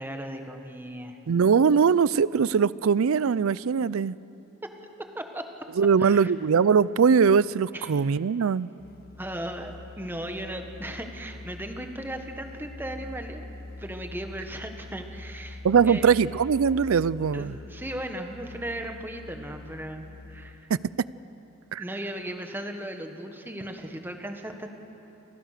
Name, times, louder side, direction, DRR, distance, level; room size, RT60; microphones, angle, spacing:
voice 1, 0.0-1.2 4.6-4.7 5.0-5.5 6.0-6.3 7.7-8.0 9.2-13.5 13.8-16.1 17.3-20.7 21.8-24.8, right 1 dB, 10° right, 5 dB, 1.4 m, -37 dB
voice 2, 1.3-4.2 5.8-8.7 15.6-17.6 20.7-20.8 21.7-21.8, right 6 dB, 70° right, 20 dB, 0.4 m, -21 dB
Musical instrument, 8.8-20.8, left 2 dB, 45° left, 1.1 m, -44 dB
29.5 x 15.0 x 6.7 m, 3.0 s
head